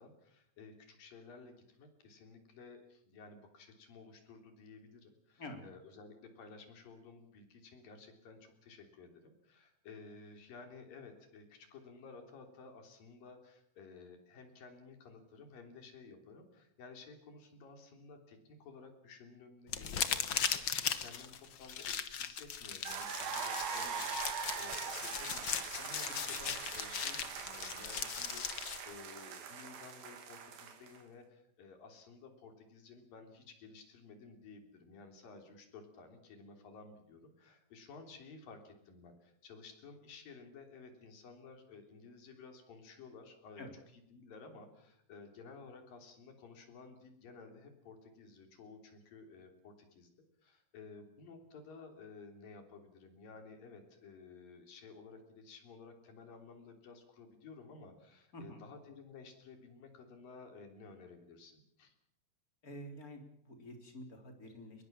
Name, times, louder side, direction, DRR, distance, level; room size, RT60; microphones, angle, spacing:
voice 1, 0.0-50.1 50.4-61.9, left 4 dB, 75° left, 5 dB, 5.1 m, -54 dB
sound 1, 19.7-28.8, left 8 dB, 50° left, 1.6 m, -38 dB
sound 2, 22.9-31.0, right 6 dB, 85° right, 4.1 m, -42 dB
voice 2, 58.3-58.7 62.6-64.8, left 1 dB, 25° left, 4 dB, 3.9 m, -48 dB
22.5 x 22.0 x 7.4 m, 0.73 s
omnidirectional pair, 4.0 m